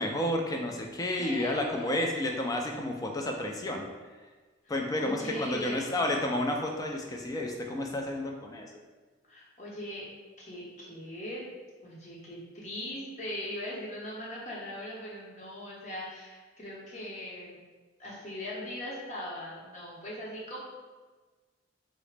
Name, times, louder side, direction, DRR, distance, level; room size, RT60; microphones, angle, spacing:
voice 1, 0.0-3.9 4.7-8.7, left 1 dB, 20° left, 2 dB, 0.3 m, -31 dB
voice 2, 1.1-2.1 4.6-6.0 9.3-10.1 10.4-11.4 11.8-17.6 18.0-20.6, left 1 dB, 40° left, -5 dB, 0.8 m, -40 dB
3.8 x 2.0 x 3.2 m, 1.3 s
head